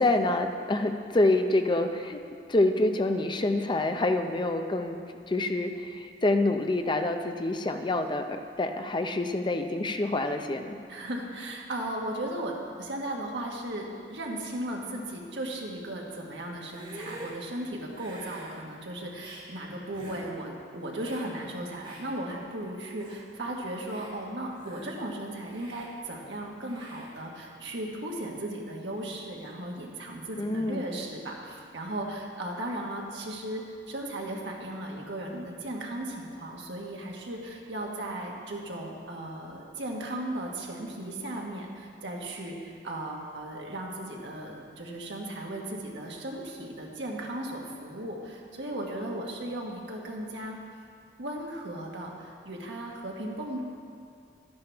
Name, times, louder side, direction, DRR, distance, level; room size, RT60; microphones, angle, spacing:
voice 1, 0.0-2.2 2.5-5.0 5.3-10.8 30.4-30.9, left 2 dB, 25° left, 6 dB, 0.5 m, -27 dB
voice 2, 10.9-50.6 51.2-53.6, right 1 dB, 80° right, -1 dB, 1.5 m, -36 dB
Hiss, 16.6-17.4 17.9-18.5 19.1-19.4 19.9-20.2 21.0-21.3 21.8-22.1 22.6-22.7 23.0-23.2 23.7-24.1 24.6-25.0 25.5-25.9 26.7-27.1, right 1 dB, 30° right, 2.2 m, -46 dB
12.0 x 10.5 x 3.5 m, 2.3 s
head